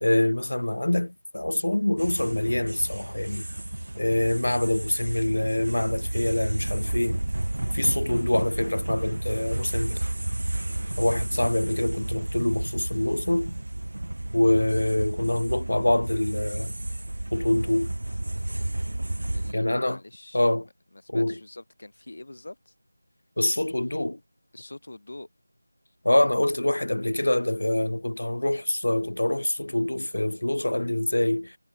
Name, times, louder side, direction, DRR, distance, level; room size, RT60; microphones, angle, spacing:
voice 1, 0.0-3.5 4.0-7.2 7.7-10.1 11.0-13.5 14.3-16.7 17.3-17.9 19.5-20.0 20.3-20.7 21.1-21.4 23.4-24.2 26.0-31.6, left 1 dB, 90° left, 0.9 m, -25 dB
sound 1, 2.0-19.5, right 1 dB, 65° right, 0.3 m, -31 dB
voice 2, 19.3-20.5 20.9-22.7 24.5-25.3, left 2 dB, 45° left, 2.3 m, -45 dB
figure-of-eight pair, 180°, 0 cm